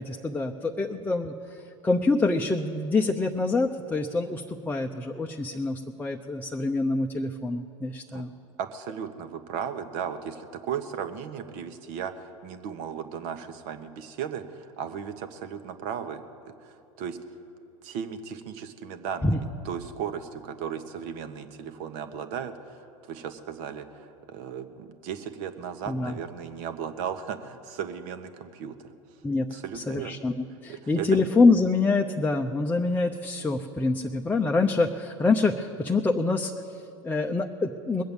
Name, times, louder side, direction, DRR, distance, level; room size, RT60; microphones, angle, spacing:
voice 1, 0.0-8.3 19.2-19.4 25.9-26.2 29.2-30.3 30.6-38.0, left 3 dB, 10° left, 2 dB, 0.7 m, -26 dB
voice 2, 8.6-16.2 16.5-17.2 17.8-22.8 23.1-28.7 29.5-30.2 30.7-31.2, right 8 dB, 55° right, 9 dB, 1.2 m, -36 dB
21.5 x 7.9 x 7.2 m, 2.7 s
hypercardioid pair, 90°, 17 cm